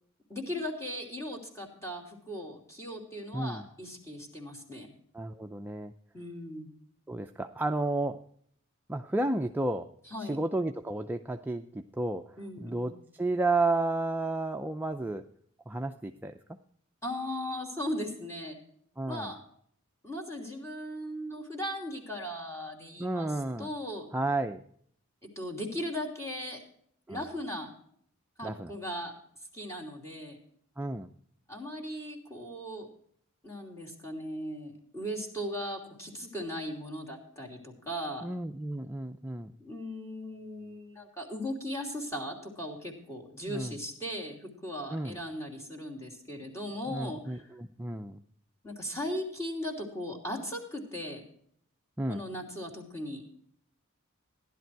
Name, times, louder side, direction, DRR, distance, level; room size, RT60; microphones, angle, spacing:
voice 1, 0.3-4.9 6.1-6.7 10.1-10.4 12.4-12.9 17.0-18.6 19.1-19.4 20.0-23.3 23.6-24.1 25.3-26.6 27.1-27.7 28.4-29.1 29.5-30.4 31.5-32.9 33.4-38.3 39.6-47.5 48.6-51.2 52.1-53.2, equal, 15° left, -1 dB, 3.0 m, -38 dB
voice 2, 3.3-3.6 5.1-5.9 7.1-8.2 8.9-9.9 10.2-12.3 12.6-15.3 15.7-16.4 19.0-19.3 23.0-23.7 24.1-24.6 27.1-27.2 28.4-28.7 30.8-31.1 38.2-39.5 43.5-43.8 44.9-45.2 46.9-48.2 52.0-52.2, right 2 dB, 10° right, 6 dB, 0.4 m, -32 dB
15.5 x 11.0 x 4.6 m, 0.64 s
head